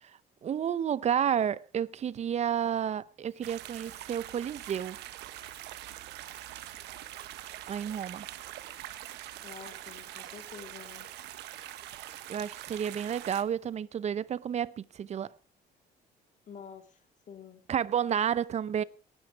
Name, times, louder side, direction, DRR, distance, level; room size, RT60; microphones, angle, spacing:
voice 1, 0.0-5.0 7.7-8.3 12.3-15.3 17.7-18.8, right 9 dB, 40° right, 0.7 m, -31 dB
Stream, 3.2-13.8, left 8 dB, 65° left, 3.9 m, -65 dB
sound 1, 3.4-13.4, right 14 dB, 85° right, 1.3 m, -44 dB
voice 2, 9.4-11.1 16.5-17.6, left 7 dB, 45° left, 2.2 m, -48 dB
18.5 x 11.0 x 4.8 m
cardioid pair, 110°, 17 cm